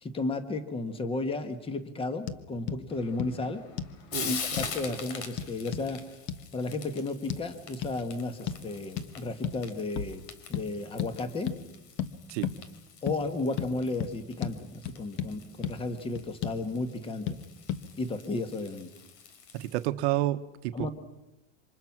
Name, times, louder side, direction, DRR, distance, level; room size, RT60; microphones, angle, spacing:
voice 1, 0.0-3.7 4.2-6.0 6.5-10.2 10.5-11.5 13.0-17.4 18.0-18.9 20.7-20.9, left 2 dB, 15° left, 9 dB, 1.7 m, -33 dB
sound 1, 2.3-2.4 2.7-2.8 3.2-3.3 3.8-4.0 4.6-4.7 5.4-5.9 6.3-6.4 7.3-7.4 7.8-8.0 8.5-8.6 9.0-9.1 9.4-9.6 10.0-10.2 10.5-10.7 11.0-11.1 11.5-11.6 12.0-12.1 12.4-12.6 13.1-13.2 13.6-13.7 14.0-14.1 14.4-14.6 14.9-15.3 15.6-15.7 16.2-16.6 17.3-17.4 17.7-17.8, left 9 dB, 35° left, 1.3 m, -33 dB
Frying (food), 2.9-19.9, left 6 dB, 85° left, 3.8 m, -44 dB
voice 2, 19.5-20.9, right 15 dB, 80° right, 10 dB, 1.2 m, -30 dB
28.5 x 25.5 x 6.1 m, 0.97 s
cardioid pair, 170°, 33 cm